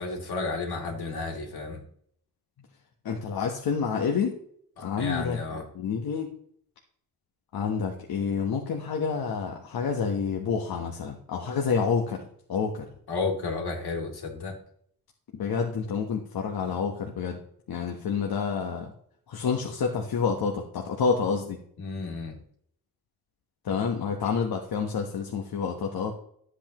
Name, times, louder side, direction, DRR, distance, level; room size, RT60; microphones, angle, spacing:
voice 1, 0.0-1.8 4.8-5.7 13.1-14.5 21.8-22.4, left 3 dB, 90° left, 1 dB, 2.9 m, -32 dB
voice 2, 3.0-4.4 4.8-6.3 7.5-12.9 15.3-17.4 17.7-18.9 19.3-21.6 23.6-26.1, left 6 dB, 70° left, 2 dB, 1.2 m, -28 dB
12.0 x 8.3 x 3.0 m, 0.66 s
wide cardioid pair, 120°, 37 cm